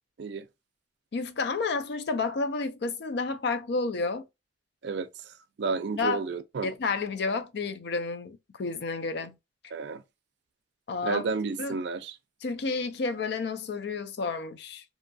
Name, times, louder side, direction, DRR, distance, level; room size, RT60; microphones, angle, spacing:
voice 1, 1.1-4.3 6.0-6.2 6.6-9.3 10.9-11.2 11.6-11.8 12.4-14.8, left 4 dB, 65° left, 0.5 m, -30 dB
voice 2, 5.6-6.7 9.7-10.0 11.0-12.2, right 4 dB, 65° right, 0.4 m, -31 dB
2.7 x 2.3 x 2.6 m
head